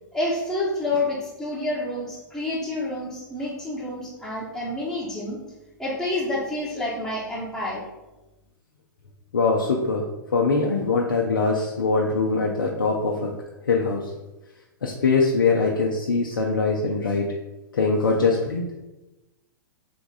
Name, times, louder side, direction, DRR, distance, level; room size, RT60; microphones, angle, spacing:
voice 1, 0.1-5.4 5.8-7.8, left 2 dB, ahead, -10 dB, 1.1 m, -28 dB
voice 2, 9.3-10.0 10.3-13.3 13.7-14.0 14.8-17.3 17.7-18.6, left 4 dB, 75° left, 0 dB, 0.6 m, -22 dB
3.7 x 3.4 x 4.0 m, 1.0 s
figure-of-eight pair, 110°, 11 cm